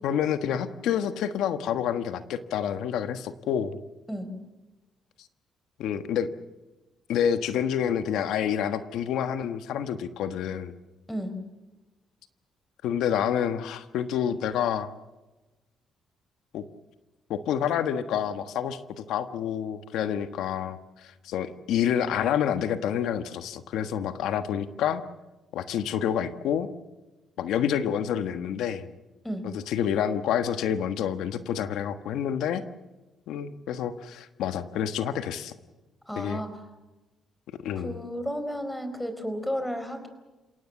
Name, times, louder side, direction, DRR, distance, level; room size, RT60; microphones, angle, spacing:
voice 1, 0.0-3.8 5.8-6.3 7.1-10.7 12.8-14.9 16.5-16.6 17.3-25.0 25.5-26.7 27.4-28.8 29.4-32.6 33.3-35.5 36.2-36.4 37.6-38.0, left 9 dB, 85° left, 10 dB, 1.4 m, -28 dB
voice 2, 36.1-36.6 37.7-40.1, equal, 5° left, 9 dB, 4.5 m, -32 dB
29.5 x 18.0 x 7.2 m, 1.1 s
cardioid pair, 90°, 0 cm